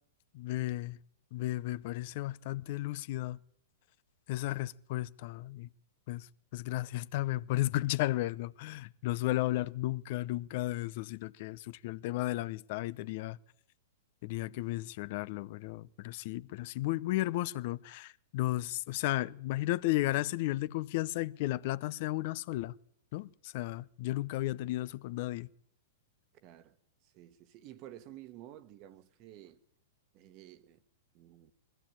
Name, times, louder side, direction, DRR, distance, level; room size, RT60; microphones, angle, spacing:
voice 1, 0.3-1.0 1.3-3.4 4.3-5.7 6.1-6.3 6.5-13.4 14.2-22.7 23.1-25.5, left 17 dB, 55° left, 0.7 m, -34 dB
voice 2, 26.3-26.8 27.0-29.6 30.1-30.8 31.1-31.5, right 13 dB, 40° right, 1.4 m, -52 dB
21.0 x 14.5 x 8.8 m
hypercardioid pair, 120°, 0 cm